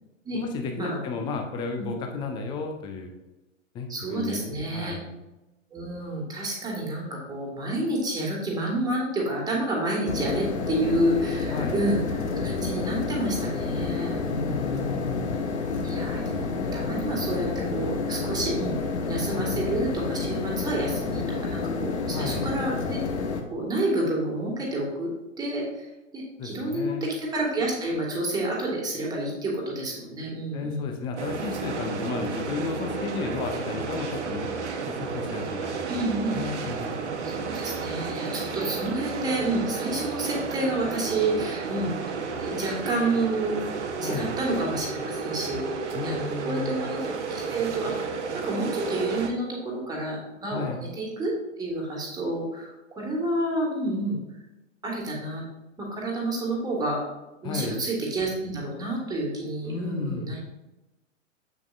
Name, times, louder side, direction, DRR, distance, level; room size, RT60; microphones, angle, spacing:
voice 1, 0.3-3.1 3.7-5.1 11.5-11.8 14.4-15.4 19.3-19.6 22.1-22.5 26.4-27.1 30.5-34.5 34.9-35.9 36.3-37.1 44.0-44.3 45.9-46.8 50.5-50.8 57.4-57.8 59.7-60.4, left 4 dB, 10° left, 4 dB, 0.5 m, -33 dB
voice 2, 3.9-5.0 5.7-14.9 15.8-18.8 19.1-23.0 23.5-25.1 25.4-25.9 26.1-30.9 35.9-36.4 37.2-42.1 42.4-43.7 44.0-54.2 54.8-55.4 55.8-57.0 57.4-60.4, right 1 dB, 10° right, -2 dB, 1.8 m, -29 dB
sound 1, 10.1-23.4, left 4 dB, 55° left, 1.0 m, -29 dB
sound 2, 31.2-49.3, right 5 dB, 60° right, 1.0 m, -32 dB
7.4 x 6.9 x 2.5 m, 1.0 s
figure-of-eight pair, 110°, 39 cm